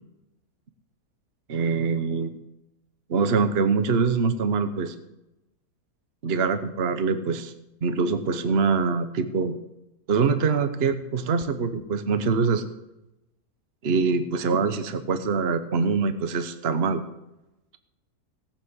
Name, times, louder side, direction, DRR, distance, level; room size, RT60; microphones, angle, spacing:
voice 1, 1.5-2.4 3.1-4.9 6.2-7.5 7.8-9.6 10.1-12.6 13.8-17.0, right 5 dB, 45° right, 9 dB, 1.1 m, -24 dB
18.0 x 7.4 x 8.2 m, 0.91 s
omnidirectional pair, 1.6 m